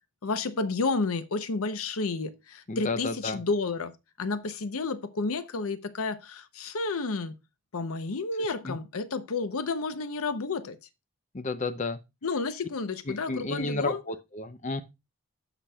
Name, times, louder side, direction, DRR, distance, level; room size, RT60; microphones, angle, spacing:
voice 1, 0.2-3.9 4.2-7.4 7.7-10.8 12.2-14.0, left 3 dB, 75° left, 0.7 m, -31 dB
voice 2, 2.7-3.4 8.6-8.8 11.3-12.0 13.1-14.8, left 3 dB, 35° left, 0.6 m, -32 dB
15.0 x 5.9 x 2.3 m
head